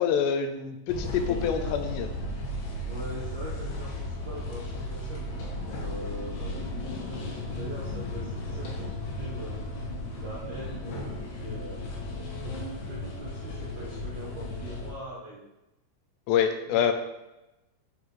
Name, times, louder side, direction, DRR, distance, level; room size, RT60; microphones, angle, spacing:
voice 1, 0.0-2.1 16.3-16.9, left 8 dB, 80° left, 7 dB, 2.6 m, -26 dB
sound 1, 0.9-14.9, left 2 dB, 65° left, 2.9 m, -35 dB
voice 2, 2.8-9.6 10.1-11.8 12.4-15.4 16.7-16.9, right 1 dB, 70° right, -7 dB, 1.8 m, -42 dB
12.0 x 5.0 x 3.2 m, 0.97 s
omnidirectional pair, 5.1 m